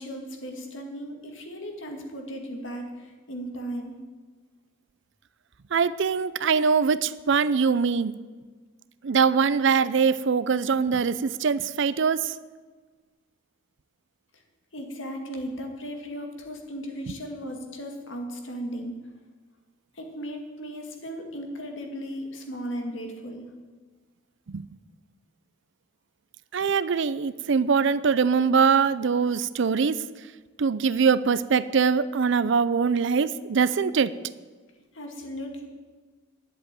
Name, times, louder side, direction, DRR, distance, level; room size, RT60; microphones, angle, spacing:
voice 1, 0.0-3.9 14.7-18.9 20.0-23.5 34.9-35.7, equal, 70° left, 3 dB, 2.2 m, -36 dB
voice 2, 5.7-8.1 9.0-12.3 24.5-24.7 26.5-30.0 30.6-34.1, right 5 dB, 65° right, 16 dB, 0.5 m, -23 dB
10.5 x 8.2 x 9.1 m, 1.4 s
head